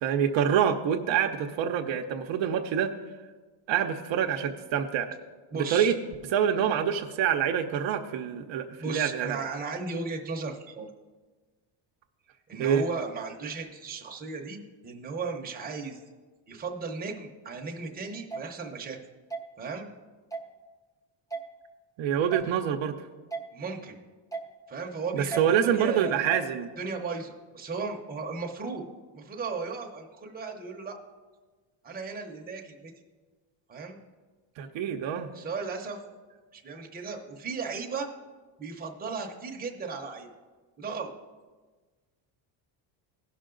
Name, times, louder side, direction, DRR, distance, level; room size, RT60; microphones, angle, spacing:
voice 1, 0.0-2.9 3.7-5.1 5.5-5.9 6.3-9.4 12.5-12.8 22.0-23.1 25.1-26.7 34.6-35.3, right 8 dB, 65° right, 4 dB, 0.7 m, -26 dB
voice 2, 5.5-5.9 8.8-10.9 12.5-16.0 16.5-19.0 19.6-19.9 23.5-24.0 24.7-26.3 26.8-28.8 29.1-31.0 31.8-32.9 33.7-34.0 35.3-36.0 36.5-38.1 38.6-40.3 40.8-41.1, right 4 dB, 20° right, 1 dB, 0.8 m, -36 dB
sound 1, 18.3-18.4 19.3-19.4 20.3-20.5 21.3-21.4 22.3-22.5 23.3-23.4 24.3-24.5 25.3-25.4 26.3-26.5, right 4 dB, 5° left, 0.6 m, -34 dB
16.5 x 5.8 x 3.8 m, 1.4 s
cardioid pair, 150°, 49 cm